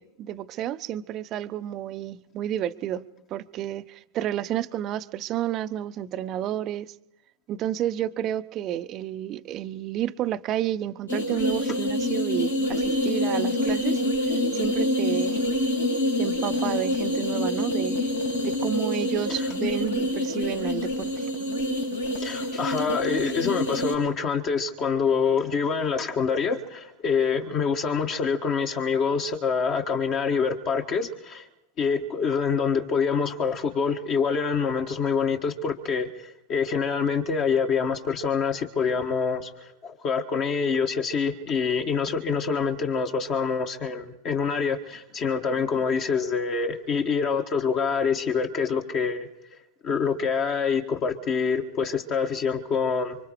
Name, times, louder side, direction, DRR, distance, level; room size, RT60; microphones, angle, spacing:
voice 1, 0.0-7.0 7.5-14.0 14.5-15.4 16.2-18.1 18.4-21.3, right 11 dB, 35° right, 0.8 m, -31 dB
sound 1, 11.1-23.9, left 1 dB, 80° left, 4.7 m, -26 dB
voice 2, 22.2-31.5 31.8-39.5 39.8-49.3 49.8-53.2, left 5 dB, 35° left, 1.7 m, -26 dB
25.5 x 24.5 x 4.8 m
figure-of-eight pair, 90°, 0 cm